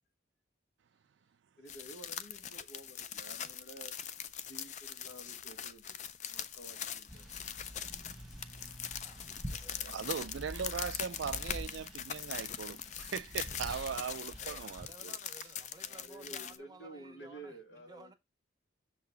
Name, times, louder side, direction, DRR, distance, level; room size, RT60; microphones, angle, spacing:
voice 1, 1.6-4.0 4.4-6.0 6.3-7.3 8.5-8.8 15.8-18.2, right 1 dB, 75° left, 1.8 m, -52 dB
sound 1, 1.7-16.6, left 9 dB, 40° left, 0.4 m, -42 dB
sound 2, 7.1-14.9, equal, ahead, 1.2 m, -47 dB
voice 2, 9.8-15.1, right 6 dB, 70° right, 0.4 m, -39 dB
voice 3, 14.4-18.1, right 3 dB, 20° right, 0.7 m, -56 dB
6.4 x 3.8 x 4.3 m
head